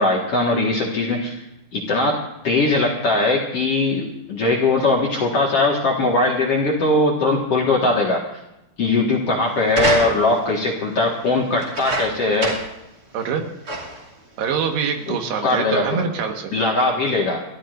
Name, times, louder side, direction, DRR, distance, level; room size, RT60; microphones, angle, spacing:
voice 1, 0.0-1.3 1.7-8.2 8.8-12.6 15.1-15.2 15.4-16.0 16.5-17.4, left 2 dB, 50° left, -2 dB, 2.1 m, -20 dB
sound 1, 9.7-10.5 11.6-12.8 13.2-13.3 13.7-14.1 14.9-15.0, right 1 dB, 25° right, 2.6 m, -26 dB
voice 2, 13.1-13.5 14.4-16.5, right 6 dB, 80° right, 3 dB, 3.6 m, -24 dB
30.0 x 13.0 x 2.6 m, 0.87 s
omnidirectional pair, 4.7 m